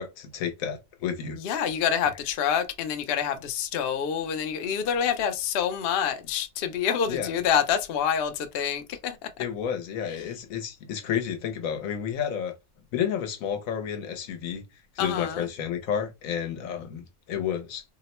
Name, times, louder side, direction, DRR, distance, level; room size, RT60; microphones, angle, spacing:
voice 1, 0.0-1.6 7.1-7.3 9.4-12.5 12.9-14.6 15.0-17.8, left 8 dB, 75° left, 1.1 m, -31 dB
voice 2, 1.4-9.2 15.0-15.5, left 8 dB, 60° left, 0.6 m, -27 dB
2.8 x 2.0 x 4.1 m
omnidirectional pair, 1.4 m